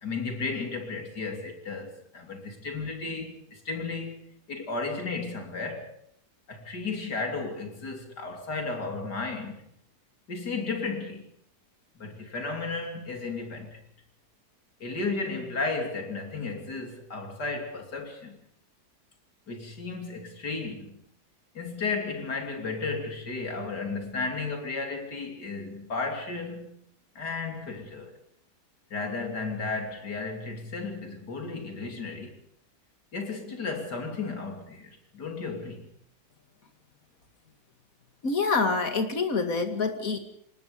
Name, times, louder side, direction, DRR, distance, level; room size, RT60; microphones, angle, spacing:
voice 1, 0.0-5.9 6.5-9.6 10.3-11.2 12.0-13.8 14.8-18.4 19.5-21.0 21.6-26.7 27.2-28.1 28.9-32.4 33.1-35.9, left 3 dB, 75° left, 3.6 m, -34 dB
voice 2, 38.2-40.2, left 4 dB, 55° left, 2.7 m, -26 dB
25.0 x 20.5 x 5.2 m
omnidirectional pair, 1.8 m